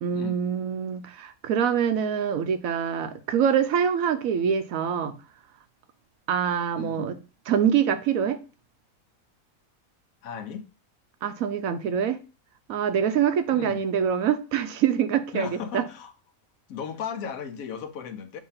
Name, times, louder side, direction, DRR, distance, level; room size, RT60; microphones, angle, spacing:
voice 1, 0.0-5.1 6.3-7.2 7.5-8.4 11.2-12.2 12.7-15.8, right 8 dB, 80° right, 1.1 m, -25 dB
voice 2, 6.7-7.1 10.2-10.7 13.5-13.8 15.3-16.1 16.7-18.4, left 7 dB, 90° left, 1.1 m, -36 dB
7.2 x 2.7 x 5.6 m
omnidirectional pair, 1.4 m